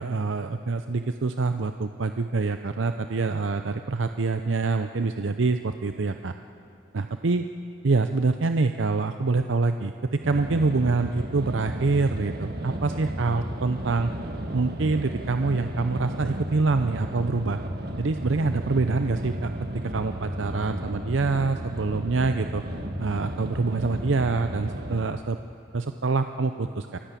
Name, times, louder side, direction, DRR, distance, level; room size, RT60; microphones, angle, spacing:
voice 1, 0.0-6.3 6.9-7.5 7.8-14.1 14.5-17.6 18.0-22.6 23.0-25.4 25.7-27.0, right 3 dB, 85° right, 8 dB, 0.6 m, -26 dB
sound 1, 10.2-25.0, right 1 dB, 50° right, 1.8 m, -34 dB
27.5 x 15.0 x 8.3 m, 2.6 s
head